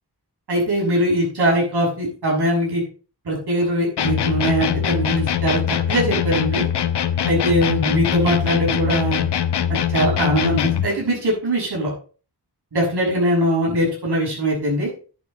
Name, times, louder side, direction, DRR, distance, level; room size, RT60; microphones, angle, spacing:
voice 1, 0.5-2.8 3.2-6.7 7.2-9.2 9.7-11.9 12.7-14.9, right 1 dB, 75° right, -3 dB, 6.7 m, -21 dB
sound 1, 4.0-11.0, left 9 dB, 80° left, 0.9 m, -22 dB
10.5 x 9.0 x 4.3 m, 0.37 s
wide cardioid pair, 130°, 40 cm